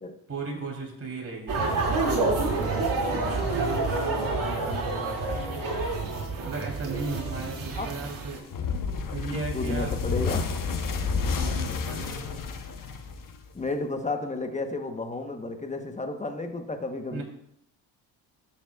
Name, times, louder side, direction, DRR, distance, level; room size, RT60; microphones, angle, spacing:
voice 1, 0.3-5.4 6.4-8.4 9.1-10.0 11.3-12.3 17.1-17.2, right 3 dB, 30° right, -1 dB, 3.4 m, -37 dB
sound 1, 1.5-8.4, right 3 dB, 45° right, 2.6 m, -28 dB
sound 2, 8.5-13.6, left 5 dB, 45° left, 1.0 m, -30 dB
voice 2, 9.5-10.5 13.5-17.2, left 2 dB, 15° left, 6 dB, 1.1 m, -32 dB
12.5 x 7.3 x 2.4 m, 0.74 s
cardioid pair, 90°, 44 cm